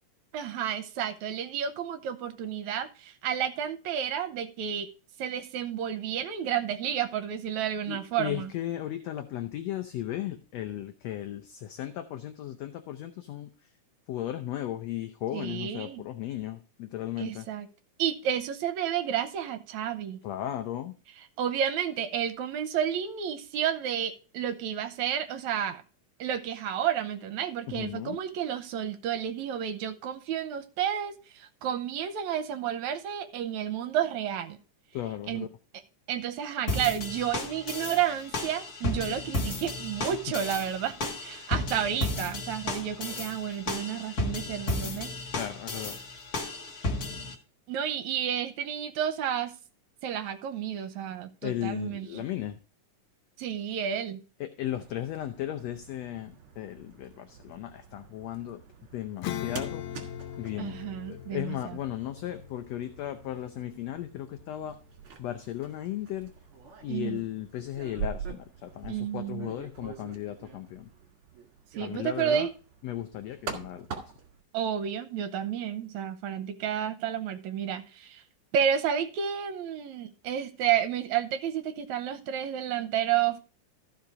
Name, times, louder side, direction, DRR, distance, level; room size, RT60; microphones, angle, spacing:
voice 1, 0.3-4.9 5.2-8.5 15.3-16.0 17.2-17.7 18.0-20.2 21.4-25.8 26.2-34.6 35.3-35.5 36.1-45.1 47.7-49.5 50.0-52.3 53.4-54.2 60.6-61.6 66.9-67.2 68.9-69.5 71.8-72.5 74.5-78.2 78.5-83.4, right 9 dB, 75° right, 2.1 m, -31 dB
voice 2, 7.9-13.7 14.1-17.5 20.2-21.0 27.7-28.2 34.9-35.5 38.8-38.9 45.3-46.0 51.4-52.6 54.4-58.6 58.9-59.8 60.4-60.8 61.1-64.8 65.2-66.3 66.8-70.9 71.8-72.5 72.8-74.0, left 12 dB, 70° left, 1.7 m, -36 dB
sound 1, 36.7-47.3, left 2 dB, 40° left, 1.6 m, -34 dB
sound 2, 54.6-74.4, right 6 dB, 45° right, 2.6 m, -45 dB
Acoustic guitar / Strum, 59.2-65.2, left 13 dB, 90° left, 2.4 m, -41 dB
15.0 x 5.2 x 4.8 m
omnidirectional pair, 3.6 m